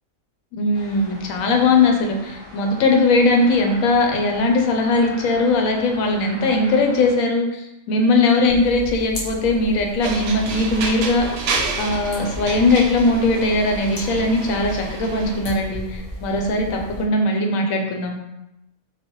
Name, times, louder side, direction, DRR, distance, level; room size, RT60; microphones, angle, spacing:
voice 1, 0.5-11.2 11.8-18.3, left 2 dB, 90° left, 2 dB, 1.0 m, -19 dB
sound 1, 0.7-7.1, equal, 40° left, 1.6 m, -41 dB
sound 2, 8.5-17.0, equal, 65° left, 1.3 m, -35 dB
sound 3, 10.0-15.7, right 3 dB, 65° right, 0.7 m, -29 dB
4.0 x 2.1 x 2.9 m, 0.89 s
omnidirectional pair, 1.4 m